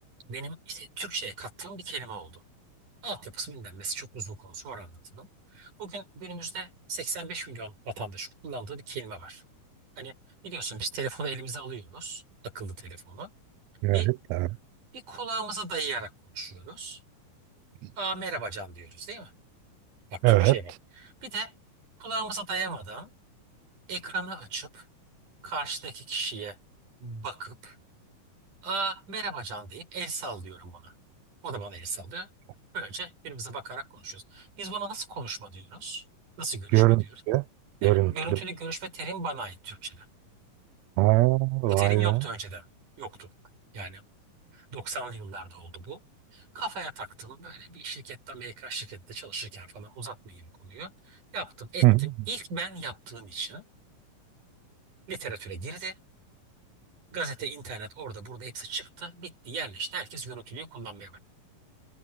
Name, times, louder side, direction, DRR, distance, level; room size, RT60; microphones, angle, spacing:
voice 1, 0.3-2.4 3.0-9.4 10.0-10.1 10.4-12.2 12.5-13.3 13.9-14.1 14.9-17.0 18.0-19.3 20.1-20.7 21.0-21.5 22.0-23.1 23.9-24.9 25.4-26.6 27.0-27.8 28.6-30.9 31.4-32.3 32.7-36.0 36.4-37.1 37.8-40.1 41.7-42.7 43.0-43.3 43.7-44.0 44.5-46.0 46.3-53.6 55.1-56.0 57.1-61.2, right 3 dB, 60° right, 8.2 m, -37 dB
voice 2, 13.8-14.5 20.2-20.6 36.7-37.4 37.8-38.4 41.0-42.2 51.8-52.1, right 19 dB, 85° right, 1.5 m, -22 dB
omnidirectional pair, 4.0 m